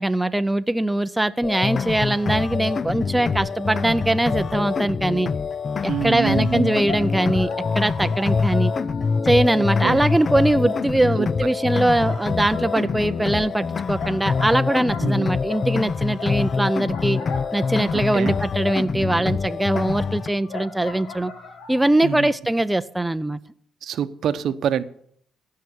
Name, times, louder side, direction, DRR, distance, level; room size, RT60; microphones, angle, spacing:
voice 1, 0.0-5.3 5.8-7.5 7.7-8.7 9.2-17.2 17.5-21.3 21.7-23.4, right 1 dB, 10° right, 11 dB, 0.5 m, -21 dB
sound 1, 1.4-20.3, left 5 dB, 40° left, 0.4 m, -25 dB
voice 2, 5.9-6.8 9.5-10.0 11.2-11.3 15.0-15.3 17.9-18.4 22.0-22.3 23.8-24.8, right 8 dB, 70° right, 13 dB, 0.8 m, -26 dB
sound 2, 6.8-9.7 10.0-11.4 11.7-19.1 19.7-22.3, left 4 dB, 80° left, 1.9 m, -39 dB
15.5 x 5.7 x 8.0 m, 0.65 s
cardioid pair, 90°, 0 cm